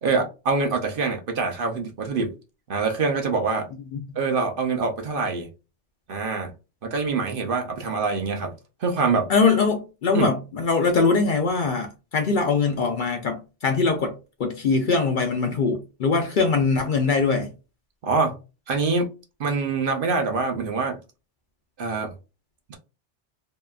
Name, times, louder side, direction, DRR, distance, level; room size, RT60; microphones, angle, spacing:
voice 1, 0.0-2.3 2.7-3.7 4.2-5.5 6.1-6.5 6.8-8.5 8.8-9.3 10.1-10.3 18.0-18.3 18.7-19.1 19.4-21.0 21.8-22.1 22.7-22.8, right 4 dB, 60° right, 0.7 m, -25 dB
voice 2, 9.3-17.5, left 4 dB, 60° left, 0.6 m, -22 dB
2.8 x 2.4 x 2.2 m
omnidirectional pair, 1.2 m